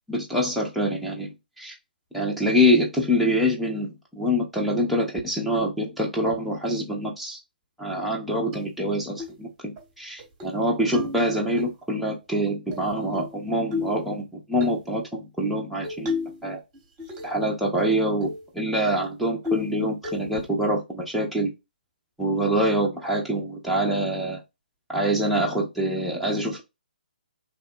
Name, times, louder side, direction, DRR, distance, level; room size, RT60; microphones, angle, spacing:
voice 1, 0.1-1.7 2.1-7.4 7.8-16.1 16.4-16.6 17.2-21.5 22.2-24.4 24.9-26.6, equal, ahead, -4 dB, 0.5 m, -25 dB
sound 1, 8.5-8.6 9.2-9.4 9.8-9.9 10.2-10.6 10.9-11.7 12.7-13.3 13.7-14.0 14.6-14.8 15.8-16.4 16.7-17.4 17.8-17.9 18.2-18.4 18.8-18.9 19.4-19.8 20.0-20.5, left 4 dB, 20° right, 0.8 m, -32 dB
2.9 x 2.0 x 2.4 m, 0.22 s
figure-of-eight pair, 130°, 5 cm